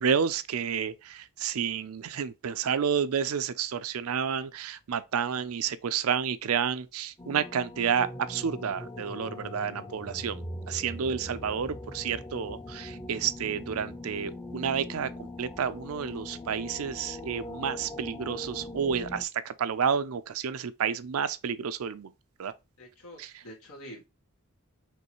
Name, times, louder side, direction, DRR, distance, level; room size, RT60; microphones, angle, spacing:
voice 1, 0.0-22.1 22.4-22.5 23.2-23.3, right 7 dB, 75° right, 0.5 m, -30 dB
sound 1, 7.2-19.2, left 1 dB, 15° left, 0.6 m, -41 dB
voice 2, 22.8-24.1, equal, 85° left, 2.1 m, -46 dB
5.3 x 3.2 x 3.0 m
head